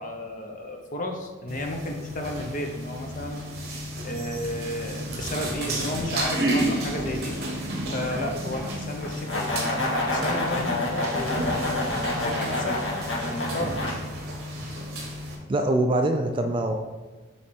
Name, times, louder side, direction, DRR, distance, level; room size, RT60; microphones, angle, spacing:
voice 1, 0.0-3.4 4.0-7.4 7.9-12.8 13.3-13.8, left 1 dB, 40° left, 3 dB, 0.7 m, -33 dB
sound 1, 1.5-15.4, right 1 dB, 50° right, 1.3 m, -32 dB
sound 2, 9.0-13.9, left 2 dB, 70° left, 1.5 m, -28 dB
voice 2, 15.5-16.8, right 1 dB, 25° right, 4 dB, 0.3 m, -23 dB
7.3 x 3.3 x 4.3 m, 1.2 s
head